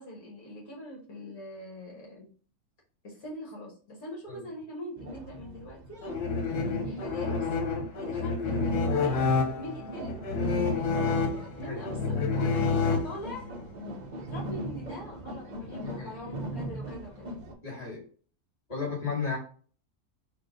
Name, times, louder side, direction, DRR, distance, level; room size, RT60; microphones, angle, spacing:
voice 1, 0.0-2.3 3.0-6.0 6.9-7.5 8.0-9.2 9.6-13.5 14.1-17.3, left 1 dB, 65° left, -3 dB, 1.7 m, -42 dB
sound 1, 5.0-17.5, right 1 dB, 45° right, 0.5 m, -40 dB
sound 2, 6.0-13.5, left 4 dB, 85° left, 1.4 m, -29 dB
voice 2, 15.8-16.1 17.6-18.0 18.7-19.4, left 5 dB, 25° left, -4 dB, 2.1 m, -34 dB
4.6 x 2.4 x 4.8 m, 0.42 s
omnidirectional pair, 1.6 m